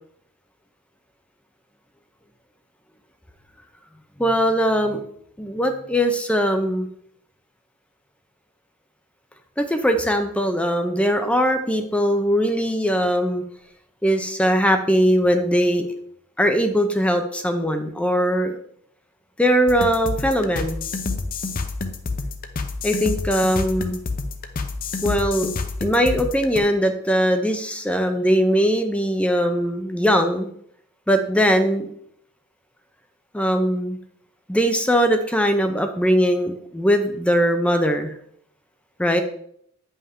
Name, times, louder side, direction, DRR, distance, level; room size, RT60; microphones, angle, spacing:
voice 1, 4.2-5.0 5.4-6.9 9.6-13.4 14.0-15.9 16.4-18.6 19.4-20.8 22.8-24.0 25.0-25.5 25.8-30.5 31.1-31.9 33.3-34.0 34.5-38.1 39.0-39.2, equal, 5° left, 6 dB, 0.6 m, -20 dB
sound 1, 19.7-26.6, left 3 dB, 40° left, 0.7 m, -29 dB
9.5 x 5.5 x 3.6 m, 0.68 s
head